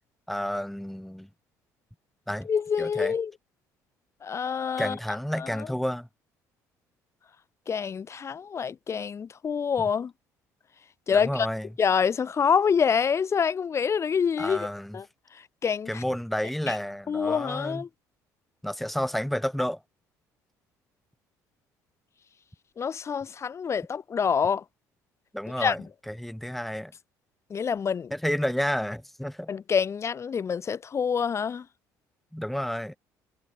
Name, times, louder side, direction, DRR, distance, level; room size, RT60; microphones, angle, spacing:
voice 1, 0.3-1.3 2.3-2.5 2.8-3.1 4.8-6.1 11.1-11.7 14.4-15.0 15.9-17.8 18.6-19.8 25.3-25.8 26.1-26.9 28.1-29.5 32.3-33.0, equal, ahead, 2.2 m, -30 dB
voice 2, 2.5-3.3 4.2-5.0 5.4-5.7 7.7-10.1 11.1-11.5 11.8-14.6 14.9-15.0 15.6-16.0 16.7-16.8 17.1-17.9 22.8-24.6 25.6-25.7 27.5-28.1 29.5-31.6, left 6 dB, 40° left, 2.2 m, -26 dB
supercardioid pair, 85°, 7 cm